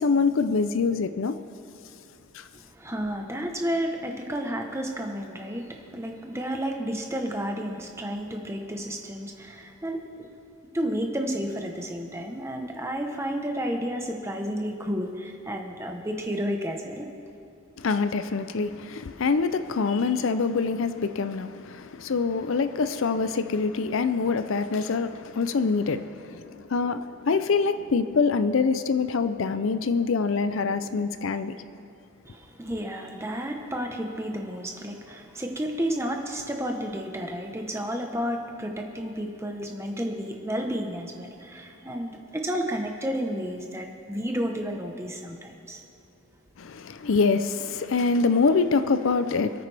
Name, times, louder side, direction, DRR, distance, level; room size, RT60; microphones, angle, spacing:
voice 1, 0.0-1.4 2.3-2.4 17.8-31.6 46.6-49.7, left 4 dB, 65° left, 0.5 m, -25 dB
voice 2, 2.7-10.3 10.7-17.1 32.2-45.8, equal, 10° right, 1.0 m, -31 dB
26.5 x 9.0 x 3.4 m
head